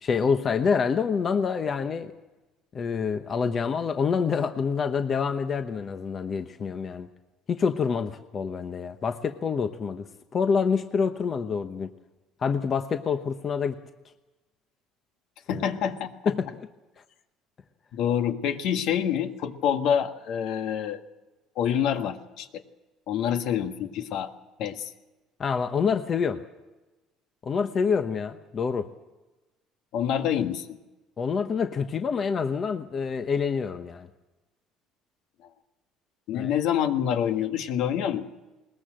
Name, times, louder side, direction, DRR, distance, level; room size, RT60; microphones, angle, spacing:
voice 1, 0.0-2.1 2.7-7.1 7.5-10.1 10.3-11.9 12.4-13.8 15.5-15.6 16.3-16.7 25.4-26.4 27.4-28.9 31.2-34.1 36.3-36.5, left 6 dB, 35° left, 8 dB, 1.0 m, -27 dB
voice 2, 15.5-16.1 17.9-21.0 21.6-22.5 23.1-24.3 24.6-24.9 29.9-30.8 36.3-38.3, left 9 dB, 70° left, 7 dB, 1.7 m, -26 dB
21.0 x 20.5 x 7.7 m, 1.1 s
cardioid pair, 135°, 0 cm